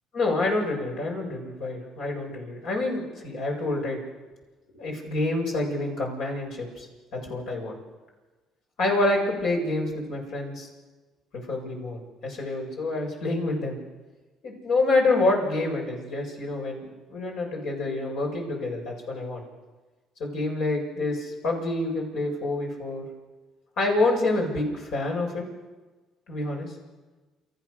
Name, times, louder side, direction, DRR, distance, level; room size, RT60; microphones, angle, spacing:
voice 1, 0.1-4.0 4.7-7.8 8.8-10.7 11.5-13.8 14.4-19.4 20.2-23.0 23.8-25.4 26.3-26.7, left 2 dB, 75° left, 0 dB, 7.6 m, -27 dB
28.5 x 14.5 x 6.7 m, 1.3 s
supercardioid pair, 80°, 0 cm